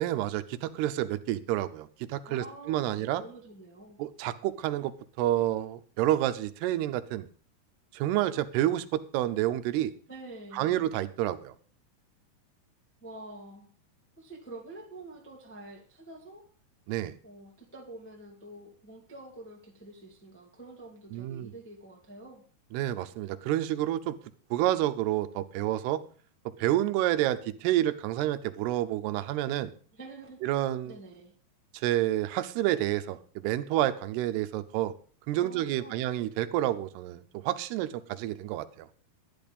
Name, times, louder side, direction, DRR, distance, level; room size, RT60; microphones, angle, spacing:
voice 1, 0.0-3.2 4.0-7.3 7.9-9.9 10.5-11.6 16.9-17.2 21.1-21.5 22.7-24.1 24.5-26.0 26.6-29.7 30.4-31.0 31.7-34.9 35.3-38.9, right 13 dB, 85° right, 12 dB, 2.8 m, -29 dB
voice 2, 2.2-4.0 10.1-10.7 13.0-13.7 14.2-16.4 17.2-22.4 29.9-30.4 30.8-31.3 35.3-36.0, right 2 dB, 5° left, 0 dB, 0.9 m, -47 dB
11.5 x 10.5 x 5.3 m, 0.42 s
omnidirectional pair, 4.6 m